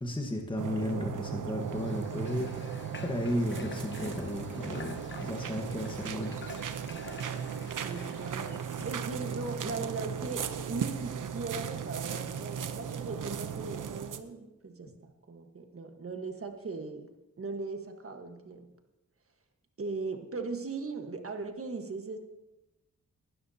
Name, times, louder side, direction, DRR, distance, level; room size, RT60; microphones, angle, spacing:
voice 1, 0.0-2.5 3.0-6.3 7.7-7.9, left 1 dB, 15° left, 2 dB, 1.4 m, -34 dB
sound 1, 0.6-14.2, right 7 dB, 85° right, 0.8 m, -37 dB
Water / Water tap faucet, 1.6-9.1, left 4 dB, 35° left, 1.1 m, -49 dB
voice 2, 7.8-17.1 17.4-18.6 19.8-22.2, right 4 dB, 45° right, 4 dB, 1.5 m, -39 dB
20.0 x 12.0 x 2.9 m, 0.99 s
wide cardioid pair, 100°, 31 cm